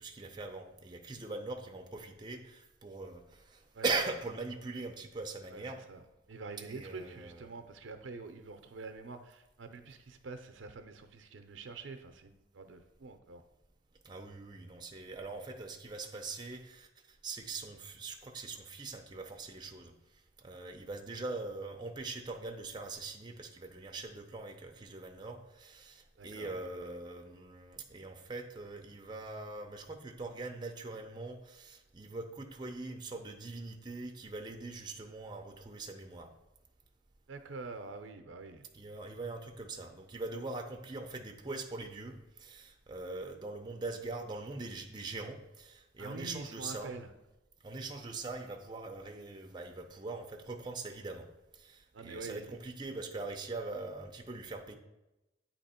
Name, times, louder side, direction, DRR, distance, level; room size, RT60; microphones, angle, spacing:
voice 1, 0.0-5.8 6.7-7.5 14.0-19.9 20.4-36.3 38.7-46.9 47.6-51.3 51.5-54.7, right 3 dB, 25° right, 3 dB, 0.5 m, -42 dB
voice 2, 3.7-4.1 5.5-5.6 5.9-6.0 6.3-13.4 26.2-26.6 37.3-38.6 46.0-47.1 51.9-52.5, right 3 dB, 90° right, 8 dB, 0.6 m, -46 dB
8.6 x 2.9 x 4.2 m, 0.96 s
head